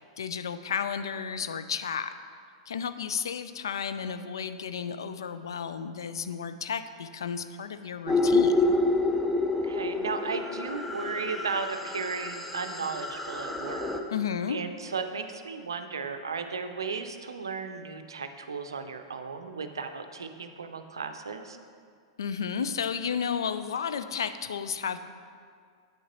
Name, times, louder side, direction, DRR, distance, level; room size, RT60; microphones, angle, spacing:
voice 1, 0.2-2.2 2.7-8.7 14.1-14.6 22.2-25.0, left 7 dB, 70° left, 11 dB, 0.3 m, -32 dB
sound 1, 8.1-14.0, left 2 dB, ahead, 0.5 m, -28 dB
voice 2, 9.6-13.9 14.5-21.6, right 5 dB, 75° right, 8 dB, 0.5 m, -35 dB
8.5 x 6.3 x 3.0 m, 2.1 s
figure-of-eight pair, 95°, 2 cm